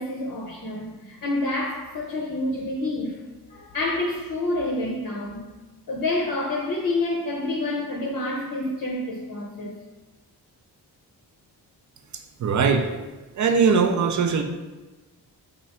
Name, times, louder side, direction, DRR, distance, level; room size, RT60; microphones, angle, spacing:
voice 1, 0.0-3.2 3.5-5.4 5.9-9.8, left 2 dB, 50° left, -3 dB, 0.6 m, -28 dB
voice 2, 12.4-12.9 13.4-14.4, right 5 dB, 45° right, 6 dB, 0.5 m, -20 dB
3.0 x 2.4 x 4.2 m, 1.2 s
cardioid pair, 70°, 41 cm